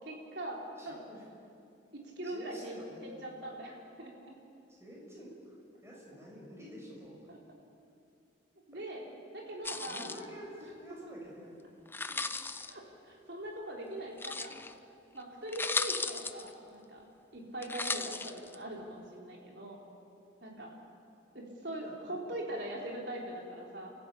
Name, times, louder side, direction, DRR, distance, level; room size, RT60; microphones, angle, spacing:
voice 1, 0.0-1.0 1.9-2.8 3.0-4.3 7.3-7.4 8.7-9.1 9.3-10.1 10.6-10.7 12.1-12.2 12.7-14.5 15.1-17.1 17.3-19.8 20.4-20.7 21.3-23.9, right 1 dB, 60° right, -1 dB, 4.4 m, -42 dB
voice 2, 0.8-1.2 2.2-3.0 4.8-5.6 5.8-7.3 8.7-8.8 9.4-9.5 9.9-11.6 21.8-21.9 22.8-23.0, equal, 15° right, -4 dB, 6.2 m, -49 dB
sound 1, 9.6-10.2 11.9-12.7 14.2-14.7 15.2-15.3 15.5-16.5 17.6-18.6, left 4 dB, 10° left, 0.5 m, -36 dB
29.5 x 14.5 x 8.5 m, 2.6 s
head